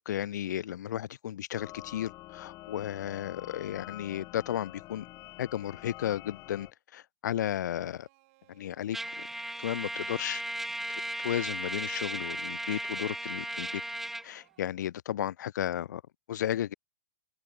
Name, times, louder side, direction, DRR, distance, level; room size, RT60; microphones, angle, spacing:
voice 1, 0.0-5.1 5.4-6.7 6.9-8.1 8.5-9.0 9.6-10.4 11.2-13.8 14.2-16.0 16.3-16.7, left 11 dB, 70° left, 0.5 m, -34 dB
sound 1, 1.6-6.7, left 19 dB, 35° left, 4.9 m, -47 dB
sound 2, 7.6-14.7, right 22 dB, 50° right, 5.7 m, -65 dB
Trumpet, 8.9-14.3, right 1 dB, 5° right, 1.1 m, -36 dB
open air
hypercardioid pair, 125°, 10 cm